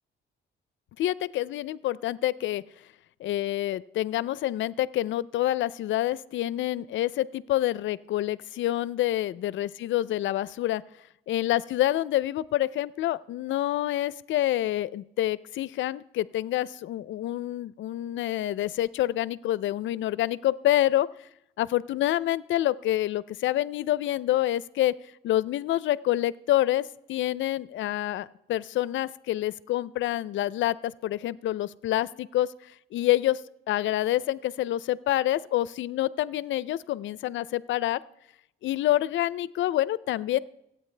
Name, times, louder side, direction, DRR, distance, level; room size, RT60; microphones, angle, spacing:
voice 1, 1.0-2.6 3.2-10.8 11.3-21.1 21.6-24.9 25.2-32.5 32.9-33.4 33.7-38.0 38.6-40.4, left 14 dB, 75° left, 19 dB, 0.5 m, -27 dB
24.0 x 8.8 x 3.3 m, 0.83 s
cardioid pair, 90°, 20 cm